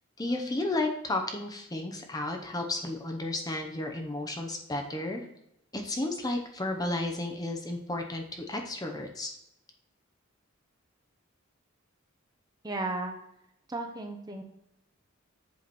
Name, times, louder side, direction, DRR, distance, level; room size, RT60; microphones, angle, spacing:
voice 1, 0.2-5.3 5.7-9.3, left 2 dB, 20° left, 3 dB, 0.8 m, -33 dB
voice 2, 12.6-13.2 13.7-14.4, right 2 dB, 20° right, 4 dB, 0.8 m, -34 dB
7.7 x 5.1 x 4.2 m, 0.80 s
head